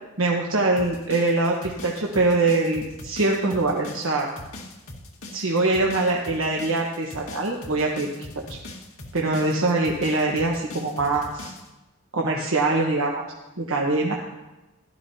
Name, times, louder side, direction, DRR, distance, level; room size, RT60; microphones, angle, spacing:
voice 1, 0.2-4.3 5.3-8.1 8.5-8.6 9.1-11.5 12.1-13.2 13.6-14.1, right 2 dB, 75° right, -1 dB, 1.2 m, -23 dB
sound 1, 0.8-11.7, left 2 dB, 90° left, 1.9 m, -41 dB
16.0 x 12.5 x 2.8 m, 1.1 s
head